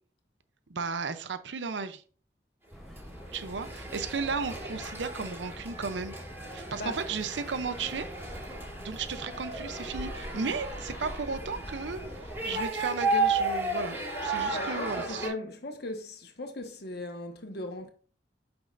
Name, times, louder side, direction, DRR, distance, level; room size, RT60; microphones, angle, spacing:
voice 1, 0.7-2.0 3.3-6.1 6.5-8.1 8.8-15.3, right 4 dB, 75° right, 0.6 m, -34 dB
sound 1, 2.7-12.7, equal, ahead, 0.8 m, -45 dB
sound 2, 3.0-15.3, right 2 dB, 15° right, 3.0 m, -34 dB
voice 2, 14.5-17.9, left 1 dB, 60° left, 1.4 m, -38 dB
8.4 x 6.1 x 2.5 m
head